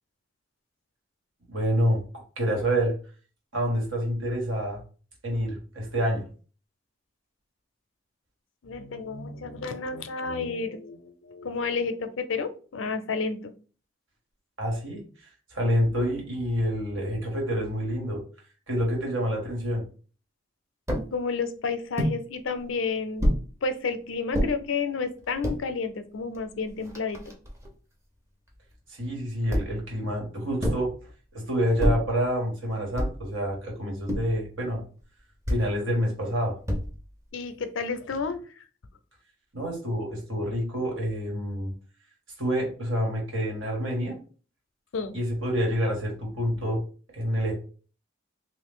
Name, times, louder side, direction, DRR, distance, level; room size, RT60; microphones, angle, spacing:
voice 1, 1.5-2.0 2.4-2.9 3.5-4.8 5.2-6.3 14.6-18.2 18.7-19.8 28.9-30.9 31.3-34.8 35.5-36.6 39.5-41.7 42.4-44.2 45.1-46.8 47.1-47.5, equal, 85° right, -1 dB, 1.6 m, -27 dB
voice 2, 8.6-13.5 20.9-23.3 23.6-27.3 37.3-38.7 44.9-45.2, left 4 dB, 80° left, 9 dB, 0.5 m, -31 dB
sound 1, 20.9-21.1 22.0-22.2 23.2-23.5 24.3-24.5 25.2-25.6 26.3-26.4 26.7-27.7 29.5-29.9 30.6-30.9 31.8-32.1 33.0-33.3 34.1-34.4 35.4-35.7 36.7-37.1, equal, 15° right, 0.6 m, -27 dB
3.1 x 2.4 x 3.6 m, 0.38 s
head